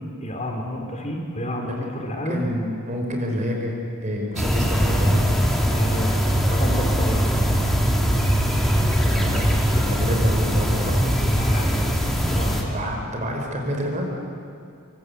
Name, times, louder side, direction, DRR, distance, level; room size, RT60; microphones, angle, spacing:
voice 1, 0.0-2.5 5.7-7.4 10.4-10.5 11.3-12.9, equal, 30° left, 1 dB, 3.4 m, -30 dB
voice 2, 2.3-5.1 9.0-10.9 11.2-11.3 12.7-14.1, equal, 35° right, 1 dB, 4.9 m, -28 dB
sound 1, 4.4-12.6, equal, ahead, 2.8 m, -21 dB
27.5 x 23.5 x 8.3 m, 2.4 s
head